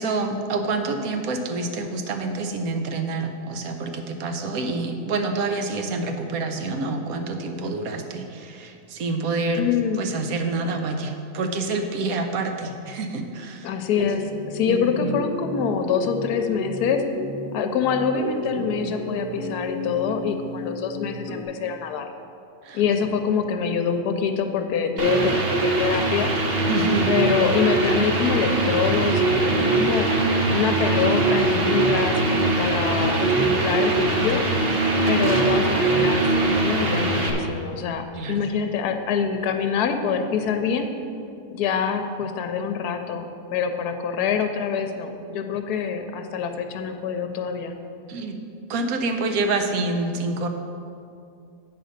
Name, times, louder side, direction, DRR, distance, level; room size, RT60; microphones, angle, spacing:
voice 1, 0.0-9.6 10.0-13.7 14.7-15.2 22.6-22.8 26.7-27.1 38.1-38.4 48.1-48.4 48.7-50.5, right 3 dB, 70° right, 5 dB, 1.2 m, -27 dB
voice 2, 9.6-10.0 13.6-17.0 17.5-22.1 22.7-26.3 27.1-30.1 30.5-34.4 35.1-40.9 41.5-47.7, left 6 dB, 80° left, 7 dB, 1.2 m, -25 dB
sound 1, 13.9-21.4, left 1 dB, 15° right, 0.7 m, -32 dB
sound 2, 25.0-37.3, right 2 dB, 45° right, 1.0 m, -21 dB
8.0 x 5.1 x 6.5 m, 2.5 s
omnidirectional pair, 1.7 m